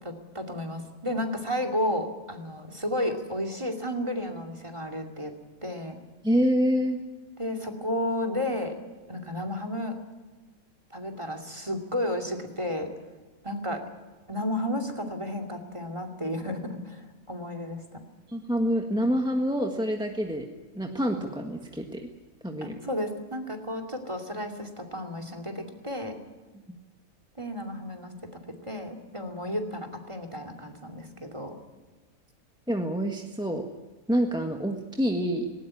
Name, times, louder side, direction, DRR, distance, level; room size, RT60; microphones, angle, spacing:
voice 1, 0.0-5.3 5.6-6.0 7.4-8.8 9.1-10.0 10.9-12.9 13.4-13.8 14.3-18.0 22.6-26.2 27.4-31.6, left 1 dB, 20° right, 6 dB, 2.6 m, -32 dB
voice 2, 6.2-7.0 18.3-20.5 20.7-22.1 22.4-22.7 26.7-26.8 32.7-33.7 34.1-35.5, equal, 5° right, 3 dB, 1.5 m, -27 dB
18.5 x 18.5 x 9.8 m, 1.3 s
omnidirectional pair, 1.5 m